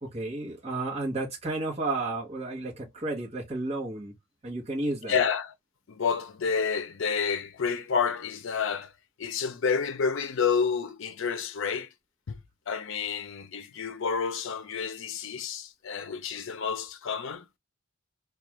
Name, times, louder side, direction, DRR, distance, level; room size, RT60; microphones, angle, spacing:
voice 1, 0.0-4.1 4.4-5.2, right 2 dB, 30° right, 1.0 m, -32 dB
voice 2, 5.0-5.5 5.9-8.9 9.2-11.9 12.3-12.4 12.7-17.4, left 6 dB, 65° left, 0.5 m, -29 dB
2.4 x 2.3 x 2.9 m
head